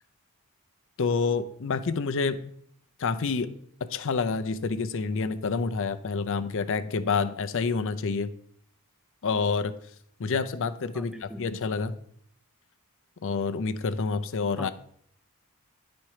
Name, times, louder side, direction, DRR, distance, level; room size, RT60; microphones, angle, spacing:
voice 1, 1.0-2.5 3.0-3.6 3.9-8.3 9.2-9.7 10.2-12.0 13.2-14.7, left 4 dB, 60° left, 10 dB, 0.5 m, -28 dB
voice 2, 10.9-11.5 14.6-14.7, equal, 5° right, 10 dB, 0.4 m, -40 dB
10.5 x 4.4 x 4.8 m, 0.67 s
head